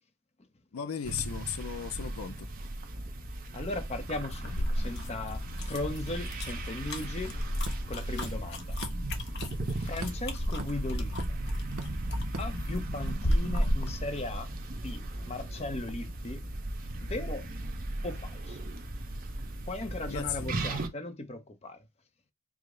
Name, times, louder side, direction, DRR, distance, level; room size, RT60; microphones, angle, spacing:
voice 1, 0.7-2.5 20.1-20.7, left 8 dB, 80° left, 0.5 m, -36 dB
sound 1, 1.0-20.9, right 1 dB, 40° right, 0.7 m, -37 dB
voice 2, 3.5-7.3 7.9-8.8 9.8-11.4 12.4-16.5 17.0-17.5 18.0-18.6 19.7-21.8, left 2 dB, 30° left, 0.7 m, -38 dB
sound 2, 4.3-14.0, equal, 50° left, 0.9 m, -34 dB
sound 3, 7.2-13.3, right 2 dB, 80° right, 0.8 m, -44 dB
4.8 x 2.1 x 3.7 m
head